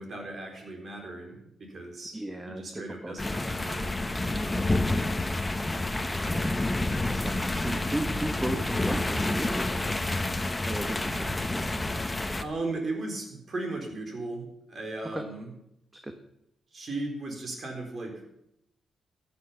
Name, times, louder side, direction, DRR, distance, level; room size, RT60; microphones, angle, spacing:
voice 1, 0.0-2.2 2.4-4.6 12.4-15.5 16.7-18.2, right 2 dB, 45° right, 2 dB, 4.1 m, -37 dB
voice 2, 2.1-3.1 5.9-10.0 10.6-11.3 15.1-15.2 16.0-16.1, right 1 dB, 15° right, 6 dB, 1.2 m, -36 dB
sound 1, 3.2-12.4, left 2 dB, 15° left, 1.1 m, -29 dB
14.5 x 9.9 x 5.7 m, 0.78 s
cardioid pair, 90°, 0 cm